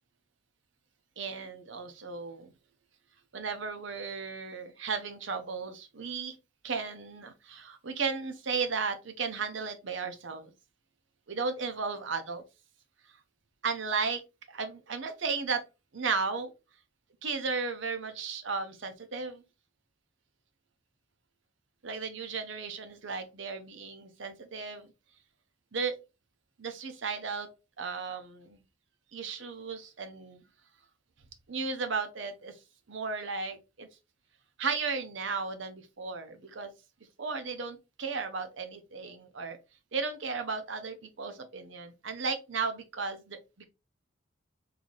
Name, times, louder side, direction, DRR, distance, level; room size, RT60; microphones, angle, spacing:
voice 1, 1.2-2.5 3.3-6.4 6.6-10.5 11.3-12.4 13.6-14.2 14.5-15.6 15.9-16.5 17.2-19.4 21.8-24.9 25.7-25.9 26.6-27.5 27.8-28.6 29.1-30.4 31.5-32.5 32.9-33.9 34.6-36.7 37.2-39.6 39.9-43.6, right 5 dB, 65° right, 0.7 m, -35 dB
3.9 x 2.8 x 3.2 m
head